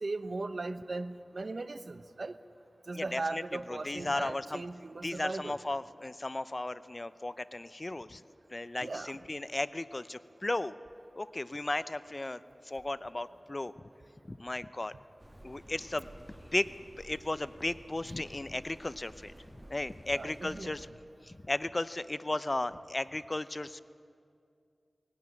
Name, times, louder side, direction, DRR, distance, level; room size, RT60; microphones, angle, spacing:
voice 1, 0.0-2.4 2.9-5.6 8.8-9.2 20.1-20.7, right 3 dB, 65° right, 12 dB, 0.9 m, -38 dB
voice 2, 2.9-4.6 5.0-10.7 11.1-13.7 14.3-14.9 15.4-16.1 16.5-20.9 21.2-23.8, left 2 dB, 35° left, 14 dB, 0.6 m, -35 dB
sound 1, 15.2-20.9, right 1 dB, 15° right, 2.1 m, -53 dB
20.0 x 16.5 x 9.8 m, 2.4 s
wide cardioid pair, 50°, 0 cm